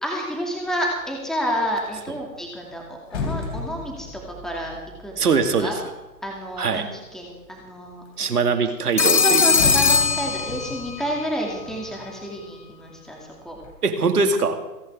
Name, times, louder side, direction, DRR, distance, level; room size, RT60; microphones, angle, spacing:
voice 1, 0.0-4.8 5.0-5.3 5.6-5.8 6.2-8.4 9.0-13.6, equal, ahead, 0 dB, 2.6 m, -30 dB
sound 1, 0.7-1.0 1.4-6.8 7.4-8.1 8.4-8.5 8.8-12.7 13.1-13.7, left 4 dB, 45° left, 3.6 m, -35 dB
voice 2, 5.2-5.7 6.6-6.9 8.2-9.6 13.8-14.6, right 4 dB, 70° right, 6 dB, 2.4 m, -22 dB
Telephone, 9.0-11.0, left 5 dB, 90° left, 1.2 m, -20 dB
28.5 x 11.0 x 3.7 m, 1.0 s
figure-of-eight pair, 130°, 48 cm